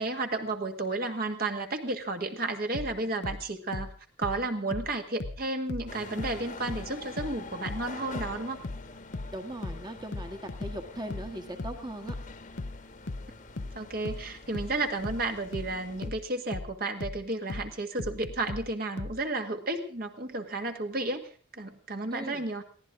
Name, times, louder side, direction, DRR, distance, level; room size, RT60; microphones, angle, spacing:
voice 1, 0.0-3.9 4.2-8.6 13.6-22.6, right 2 dB, 45° right, 5 dB, 1.8 m, -32 dB
sound 1, 2.7-5.9 6.2-19.2, left 2 dB, 60° left, 0.8 m, -38 dB
sound 2, 5.9-16.1, left 3 dB, 40° left, 1.4 m, -46 dB
voice 2, 9.3-12.1 22.1-22.4, right 1 dB, 20° right, 6 dB, 1.5 m, -39 dB
22.5 x 16.0 x 3.7 m, 0.40 s
head